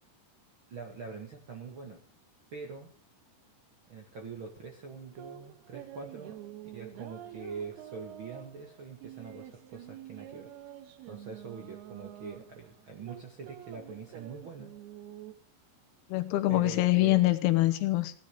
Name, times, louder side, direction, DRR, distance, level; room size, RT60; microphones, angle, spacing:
voice 1, 0.7-2.0 2.5-2.9 3.9-6.4 6.7-10.5 11.1-14.7 16.5-17.3, right 5 dB, 55° right, 3 dB, 1.4 m, -44 dB
sound 1, 5.0-15.3, right 13 dB, 85° right, 2.9 m, -48 dB
voice 2, 16.1-18.1, left 18 dB, 85° left, 12 dB, 3.0 m, -25 dB
16.0 x 11.5 x 4.9 m, 0.43 s
omnidirectional pair, 4.5 m